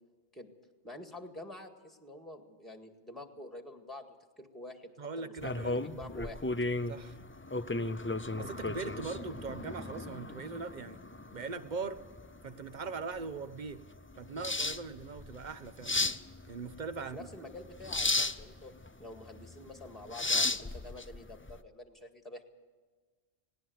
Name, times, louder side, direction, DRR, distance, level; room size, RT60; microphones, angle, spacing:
voice 1, 0.8-4.1 4.4-4.9 5.2-6.4 17.1-18.7 19.0-22.4, left 1 dB, ahead, 5 dB, 1.8 m, -47 dB
voice 2, 5.0-6.1 6.9-7.2 8.4-11.0 11.3-12.0 12.4-13.8 14.2-15.9 16.5-17.3, right 4 dB, 45° right, 12 dB, 1.1 m, -40 dB
sound 1, 5.4-21.6, left 2 dB, 20° left, 0.3 m, -35 dB
18.5 x 18.5 x 7.9 m, 1.4 s
omnidirectional pair, 1.2 m